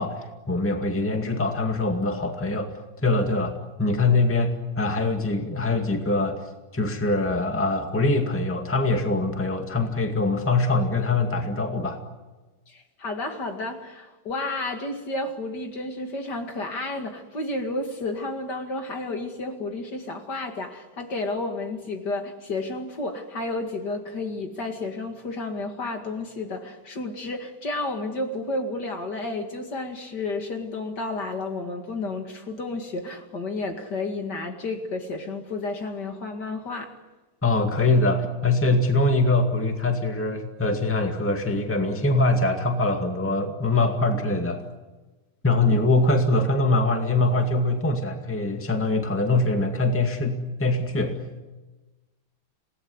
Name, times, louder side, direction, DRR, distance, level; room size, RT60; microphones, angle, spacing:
voice 1, 0.0-2.7 3.0-3.5 3.8-6.4 6.7-12.0 37.4-44.6 45.4-51.2, left 2 dB, 5° left, 4 dB, 2.0 m, -23 dB
voice 2, 12.7-36.9, left 2 dB, 50° left, 4 dB, 2.8 m, -31 dB
28.5 x 18.5 x 9.7 m, 1.2 s
omnidirectional pair, 2.4 m